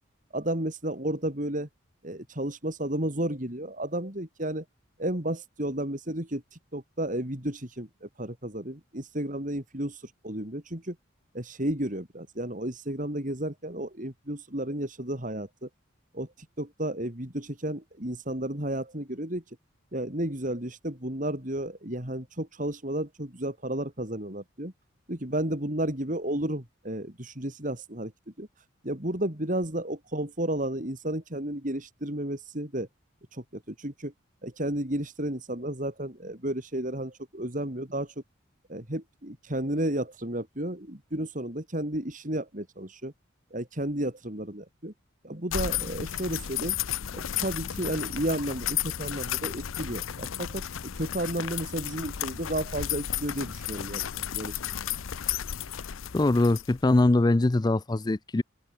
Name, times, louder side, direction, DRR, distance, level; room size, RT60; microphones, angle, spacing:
voice 1, 0.3-1.7 2.0-4.6 5.0-6.4 6.7-11.0 11.3-15.7 16.1-16.3 16.6-19.4 19.9-24.7 25.1-28.1 28.4-28.5 28.8-32.9 33.3-34.1 34.4-38.1 38.7-43.1 43.5-44.9 45.2-46.8 47.1-54.5, right 1 dB, 40° right, 4.1 m, -32 dB
sound 1, 45.5-57.0, left 10 dB, 85° left, 0.7 m, -33 dB
voice 2, 56.1-58.4, left 2 dB, 20° left, 0.4 m, -22 dB
head